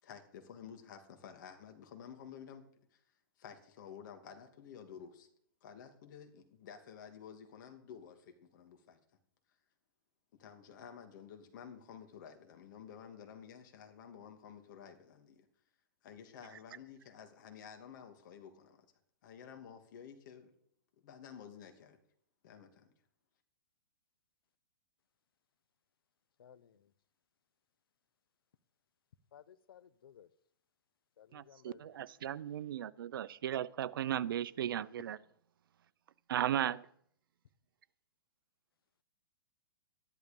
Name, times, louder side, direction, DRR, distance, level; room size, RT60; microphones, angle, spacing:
voice 1, 0.0-2.6 2.9-3.0 3.4-5.3 5.6-9.0 10.4-15.5 16.0-18.9 19.2-20.5 21.0-22.0 22.4-22.9, left 7 dB, 55° left, 5 dB, 2.7 m, -52 dB
voice 2, 29.3-30.3 31.2-31.8, left 9 dB, 75° left, 17 dB, 1.0 m, -57 dB
voice 3, 31.3-35.2 36.3-36.9, right 11 dB, 70° right, 17 dB, 0.7 m, -36 dB
13.0 x 11.5 x 5.4 m, 0.66 s
hypercardioid pair, 145°, 12 cm